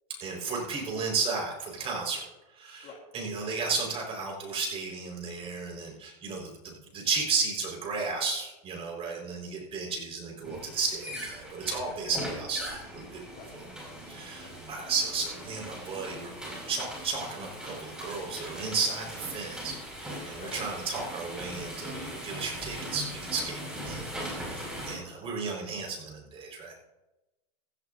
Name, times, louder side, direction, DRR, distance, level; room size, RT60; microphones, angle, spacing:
voice 1, 0.2-13.6 14.1-26.7, right 4 dB, 30° right, -1 dB, 4.8 m, -34 dB
sound 1, 10.4-24.9, equal, 5° right, 5.4 m, -40 dB
voice 2, 24.6-25.0, left 6 dB, 35° left, 2 dB, 2.7 m, -47 dB
16.0 x 14.0 x 2.7 m, 1.0 s
supercardioid pair, 130°, 20 cm